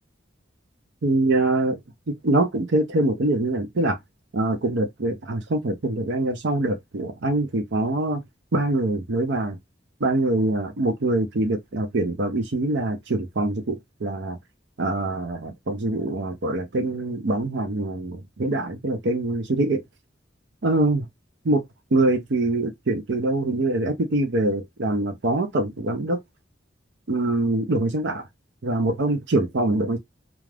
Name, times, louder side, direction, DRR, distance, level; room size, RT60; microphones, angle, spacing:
voice 1, 1.0-1.8 2.1-4.0 4.3-8.2 8.5-9.6 10.0-14.4 14.8-19.8 20.6-21.0 21.5-21.6 21.9-26.2 27.1-28.2 28.6-30.0, right 2 dB, 65° right, 0.6 m, -24 dB
2.4 x 2.3 x 3.2 m
head